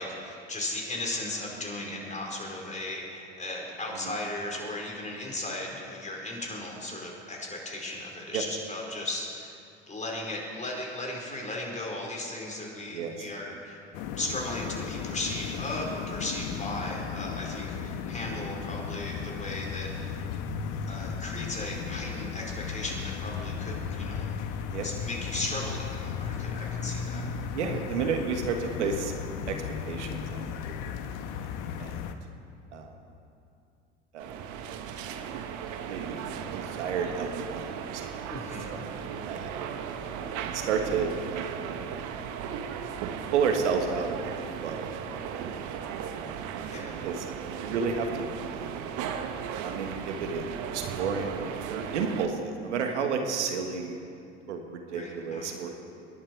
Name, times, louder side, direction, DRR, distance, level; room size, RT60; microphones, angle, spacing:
voice 1, 0.0-9.5 9.9-13.8 14.2-20.2 20.9-24.3 24.8-27.3 38.3-38.7 46.6-47.1 54.9-55.6, left 2 dB, 20° left, -1 dB, 4.7 m, -36 dB
voice 2, 12.9-13.3 24.7-24.9 27.5-29.1 29.5-31.0 31.4-32.1 32.7-33.0 34.1-34.4 35.8-38.3 38.7-39.5 40.1-41.5 43.3-45.0 45.3-45.8 46.5-46.8 47.0-47.3 47.6-48.7 49.6-54.0 54.5-55.8, right 5 dB, 80° right, 4 dB, 1.7 m, -32 dB
sound 1, 13.9-32.1, left 6 dB, 60° left, 1.2 m, -35 dB
sound 2, 34.2-52.3, right 7 dB, 55° right, 1.3 m, -36 dB
27.0 x 11.0 x 4.7 m, 2.5 s
hypercardioid pair, 75°, 35 cm